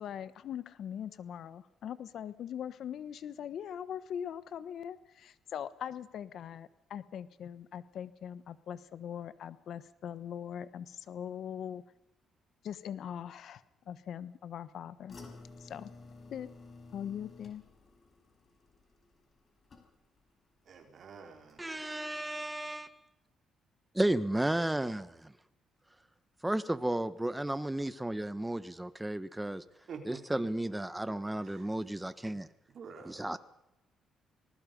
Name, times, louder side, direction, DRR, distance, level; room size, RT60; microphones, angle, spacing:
voice 1, 0.0-11.8 12.6-15.2 15.6-15.9 16.3-16.5 16.9-17.6, left 9 dB, 70° left, 14 dB, 1.2 m, -41 dB
sound 1, 15.1-20.3 20.6-21.1 21.5-21.6, left 3 dB, 45° left, 5.0 m, -53 dB
voice 2, 20.6-21.8 29.9-30.5 31.4-31.8 32.7-33.3, right 5 dB, 55° right, 3 dB, 4.4 m, -48 dB
voice 3, 21.6-22.9 23.9-25.3 26.4-29.6 30.1-32.5 33.1-33.4, right 1 dB, 10° right, 13 dB, 1.2 m, -33 dB
27.0 x 19.5 x 5.4 m, 0.88 s
cardioid pair, 90°, 0 cm